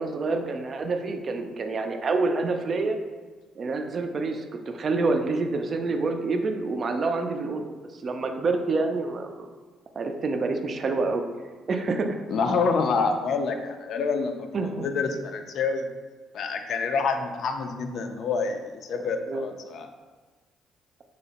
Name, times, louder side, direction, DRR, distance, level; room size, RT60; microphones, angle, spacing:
voice 1, 0.0-3.0 3.6-7.7 8.0-9.5 10.0-11.2 11.7-12.2 14.5-14.9 19.3-19.4, right 3 dB, 45° right, 5 dB, 0.3 m, -27 dB
voice 2, 12.3-14.5 14.8-15.9 16.3-19.9, left 4 dB, 60° left, 6 dB, 0.3 m, -27 dB
2.7 x 2.0 x 3.9 m, 1.3 s
hypercardioid pair, 50°, 0 cm